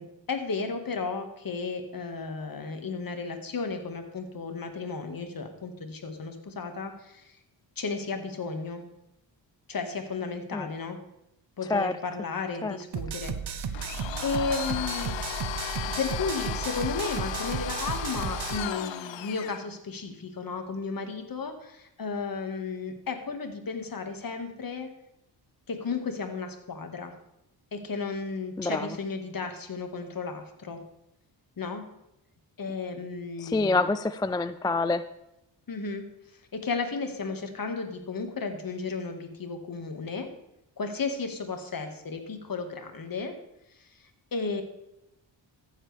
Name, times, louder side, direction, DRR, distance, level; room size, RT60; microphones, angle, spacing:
voice 1, 0.0-7.3 7.8-8.8 9.7-11.0 11.6-13.8 14.2-15.2 15.8-24.9 25.7-27.1 27.7-30.8 31.6-31.9 32.6-33.8 35.7-36.1 36.5-40.3 40.8-43.4 44.3-44.6, left 4 dB, 50° left, 6 dB, 1.8 m, -34 dB
sound 1, 12.9-18.6, right 6 dB, 60° right, 0.9 m, -34 dB
Domestic sounds home sounds, 13.7-19.6, left 11 dB, 75° left, 0.7 m, -35 dB
voice 2, 28.6-28.9 33.4-35.0, left 3 dB, 10° left, 12 dB, 0.3 m, -26 dB
14.5 x 7.5 x 3.4 m, 0.87 s
cardioid pair, 65°, 45 cm